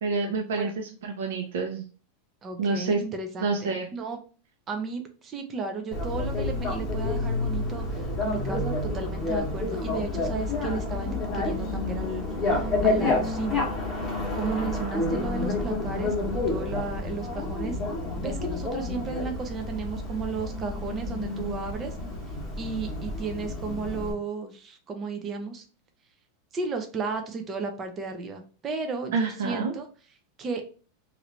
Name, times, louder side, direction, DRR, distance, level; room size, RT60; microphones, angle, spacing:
voice 1, 0.0-1.8 2.6-3.0 3.4-3.9 29.1-29.7, right 4 dB, 75° right, 1 dB, 0.7 m, -28 dB
voice 2, 2.4-4.2 4.7-13.6 14.4-17.8 18.2-22.0 22.6-25.7 26.5-29.9 30.4-30.7, right 4 dB, 15° right, 5 dB, 0.5 m, -34 dB
Bicycle, 5.9-24.1, left 2 dB, 15° left, 1.0 m, -29 dB
3.1 x 2.5 x 3.0 m, 0.38 s
supercardioid pair, 180°, 0 cm